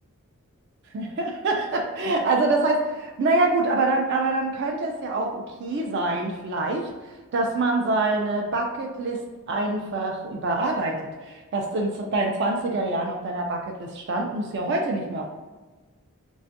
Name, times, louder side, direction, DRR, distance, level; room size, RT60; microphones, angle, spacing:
voice 1, 0.9-6.9 7.3-9.2 9.5-15.3, right 2 dB, 50° right, 1 dB, 0.3 m, -25 dB
2.4 x 2.3 x 2.5 m, 1.2 s
head